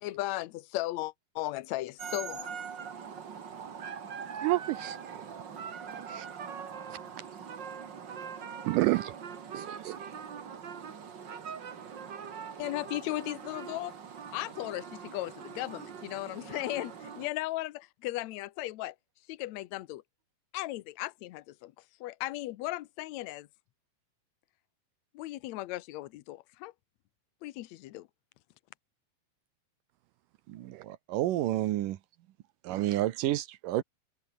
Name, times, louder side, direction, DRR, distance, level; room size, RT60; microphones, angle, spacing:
voice 1, 0.0-2.6 12.6-14.0 14.3-18.9 19.3-20.0 20.5-21.7 22.0-23.5 25.1-26.7 27.4-28.1, left 16 dB, 80° left, 1.6 m, -36 dB
sound 1, 2.0-17.3, right 7 dB, 40° right, 1.8 m, -42 dB
voice 2, 4.4-5.2 6.1-6.3 8.6-9.1 9.5-10.0 30.7-30.8 32.7-32.8, right 19 dB, 90° right, 1.8 m, -30 dB
voice 3, 30.5-32.0 32.6-33.8, right 14 dB, 70° right, 2.5 m, -30 dB
omnidirectional pair, 4.2 m